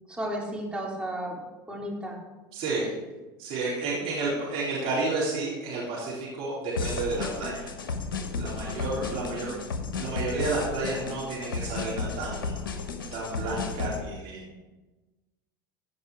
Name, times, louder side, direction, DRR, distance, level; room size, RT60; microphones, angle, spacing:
voice 1, 0.1-1.4 1.7-2.2 3.9-4.0 8.6-9.6, right 1 dB, 10° right, -3 dB, 3.6 m, -35 dB
voice 2, 2.5-2.9 3.4-7.7 8.4-9.5 10.0-12.6 13.1-14.6, right 3 dB, 60° right, -6 dB, 3.9 m, -31 dB
sound 1, 6.7-14.0, left 4 dB, 85° left, 1.0 m, -33 dB
15.5 x 5.4 x 4.8 m, 1.2 s
hypercardioid pair, 85°, 11 cm